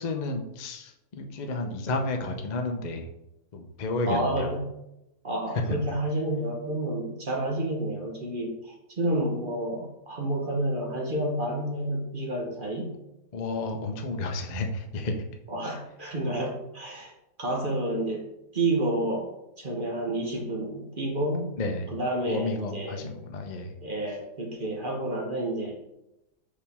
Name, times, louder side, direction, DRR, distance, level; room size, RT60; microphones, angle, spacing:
voice 1, 0.0-3.1 3.5-4.5 5.7-5.8 13.3-15.2 21.6-21.8 22.3-23.8, left 2 dB, 55° left, 4 dB, 0.5 m, -31 dB
voice 2, 4.1-4.7 5.2-12.9 14.1-14.2 15.5-17.1 17.4-18.2 18.5-19.3 19.6-21.5 21.9-23.0 23.8-25.8, right 1 dB, 40° right, 0 dB, 0.9 m, -30 dB
5.7 x 5.0 x 3.5 m, 0.88 s
omnidirectional pair, 1.7 m